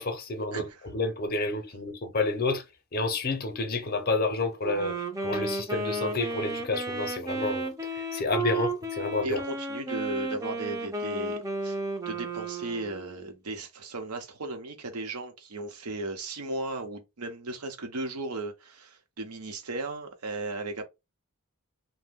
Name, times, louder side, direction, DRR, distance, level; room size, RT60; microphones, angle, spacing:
voice 1, 0.0-2.6 2.9-9.4, left 3 dB, 45° left, 0.6 m, -30 dB
Wind instrument woodwind instrument, 4.6-13.3, right 2 dB, 15° right, 0.5 m, -33 dB
voice 2, 9.2-11.8 12.1-20.8, right 2 dB, 90° right, 0.8 m, -36 dB
2.6 x 2.1 x 3.5 m
head